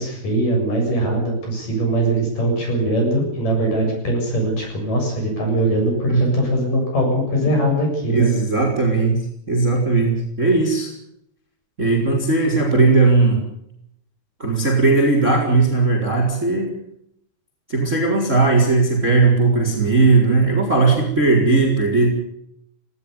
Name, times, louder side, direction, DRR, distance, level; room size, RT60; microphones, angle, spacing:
voice 1, 0.0-8.3, right 1 dB, 40° left, 2 dB, 8.7 m, -21 dB
voice 2, 8.1-9.2 9.5-10.9 11.8-13.4 14.4-16.7 17.7-22.2, right 3 dB, 15° right, 2 dB, 4.0 m, -17 dB
18.5 x 17.5 x 9.8 m, 0.76 s
omnidirectional pair, 5.7 m